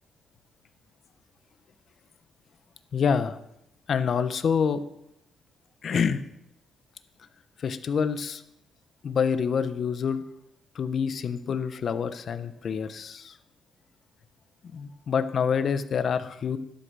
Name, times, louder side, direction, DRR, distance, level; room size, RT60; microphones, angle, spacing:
voice 1, 2.9-3.4 3.9-4.8 5.8-6.2 7.6-8.4 9.0-10.2 10.7-13.3 14.7-16.6, left 6 dB, 55° left, 11 dB, 1.0 m, -27 dB
12.0 x 8.1 x 6.3 m, 0.82 s
cardioid pair, 90°, 0 cm